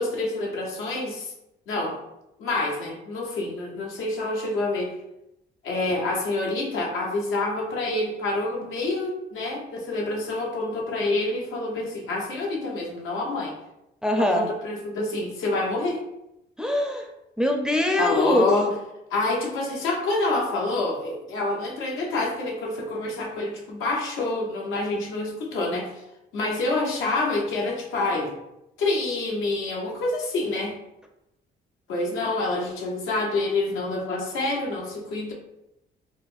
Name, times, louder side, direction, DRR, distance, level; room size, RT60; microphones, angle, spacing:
voice 1, 0.0-1.3 1.7-2.0 2.4-4.9 5.6-13.5 14.2-16.0 18.0-18.7 19.1-26.0 26.3-28.3 28.8-30.8 31.9-35.3, left 2 dB, 85° left, -1 dB, 0.8 m, -27 dB
voice 2, 14.0-14.4 16.6-17.1 17.4-18.5, left 1 dB, 5° right, 2 dB, 0.4 m, -22 dB
3.9 x 2.1 x 2.5 m, 0.87 s
cardioid pair, 90°, 20 cm